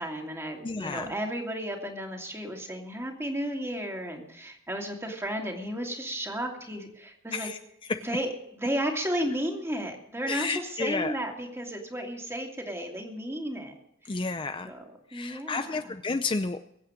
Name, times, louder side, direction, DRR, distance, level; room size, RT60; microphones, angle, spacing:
voice 1, 0.0-7.5 8.0-13.7 14.0-14.2 14.7-14.8 15.1-15.9, equal, 15° right, 1 dB, 2.7 m, -33 dB
voice 2, 0.6-1.1 7.3-7.6 7.9-8.0 10.2-11.2 14.1-14.7 15.1-16.6, left 3 dB, 25° left, 9 dB, 0.5 m, -31 dB
22.5 x 8.7 x 5.1 m, 0.77 s
head